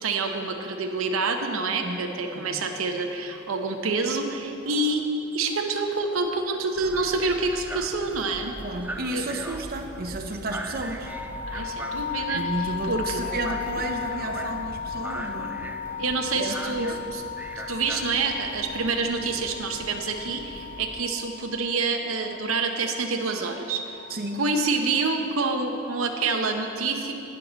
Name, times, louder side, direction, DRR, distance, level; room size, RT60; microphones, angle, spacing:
voice 1, 0.0-5.0 5.3-8.6 9.1-9.2 11.5-13.2 16.0-17.2 17.7-24.0 24.4-27.1, right 3 dB, 85° right, 4 dB, 0.8 m, -27 dB
voice 2, 2.4-2.7 8.6-11.1 12.3-15.8 16.4-17.0 24.1-24.4, right 2 dB, 45° right, 3 dB, 0.7 m, -32 dB
sound 1, 3.9-4.0 4.3-4.4 4.7-5.0 5.4-6.8 7.1-7.5 7.8-9.2 9.5-9.9 10.3-11.6 11.9-12.3 12.7-14.0 14.4-14.7 15.1-15.6 15.9-16.0 16.2-16.3 17.1-17.2 18.0-18.1, left 1 dB, 55° left, 2.4 m, -50 dB
sound 2, 6.7-21.0, right 1 dB, 10° right, 0.3 m, -40 dB
sound 3, 11.0-25.1, left 8 dB, 10° left, 2.4 m, -36 dB
18.0 x 6.6 x 4.0 m, 2.8 s
head